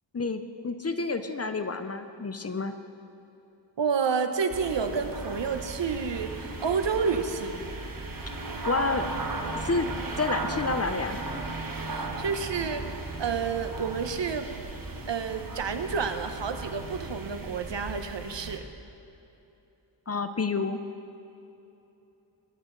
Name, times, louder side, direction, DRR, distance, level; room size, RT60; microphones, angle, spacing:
voice 1, 0.1-2.7 8.7-9.1 9.6-9.9 10.2-11.2 20.1-20.8, left 3 dB, 35° left, 9 dB, 0.6 m, -29 dB
voice 2, 3.8-7.7 11.8-14.5 15.1-18.7, right 5 dB, 65° right, 8 dB, 0.9 m, -30 dB
sound 1, 4.5-18.6, right 2 dB, 45° right, 1.2 m, -36 dB
22.5 x 8.3 x 3.9 m, 2.9 s
wide cardioid pair, 100°, 46 cm